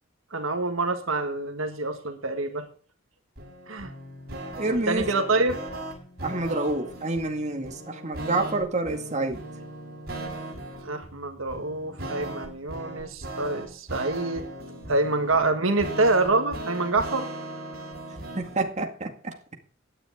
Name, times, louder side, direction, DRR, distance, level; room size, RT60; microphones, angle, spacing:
voice 1, 0.3-2.7 3.7-3.9 4.9-5.6 10.8-14.5 14.9-17.3, right 2 dB, 75° right, 6 dB, 1.8 m, -26 dB
sound 1, 3.4-18.7, right 1 dB, 50° right, 6.4 m, -38 dB
voice 2, 4.6-5.1 6.2-9.4 18.4-19.3, right 2 dB, 35° right, 4 dB, 2.1 m, -28 dB
16.0 x 10.0 x 3.7 m, 0.42 s
head